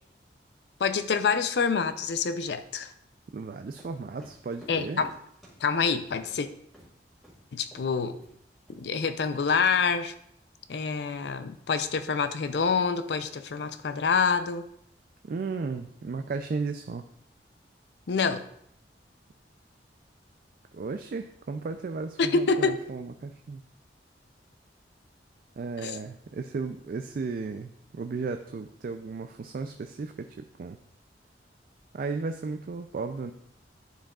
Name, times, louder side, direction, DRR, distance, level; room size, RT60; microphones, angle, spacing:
voice 1, 0.8-2.9 4.7-5.1 5.6-6.5 7.5-8.2 8.7-10.1 10.7-14.6 18.1-18.4 22.2-22.8 25.8-26.0, left 5 dB, 70° left, 11 dB, 0.5 m, -26 dB
voice 2, 3.3-5.0 15.2-17.0 20.7-23.6 25.6-30.8 31.9-33.3, right 4 dB, 50° right, 7 dB, 0.3 m, -35 dB
sound 1, 3.7-6.4 6.7-6.9 7.2-7.4 7.7-7.9 8.2-8.8, equal, ahead, 2.0 m, -52 dB
10.0 x 4.6 x 2.3 m, 0.70 s
head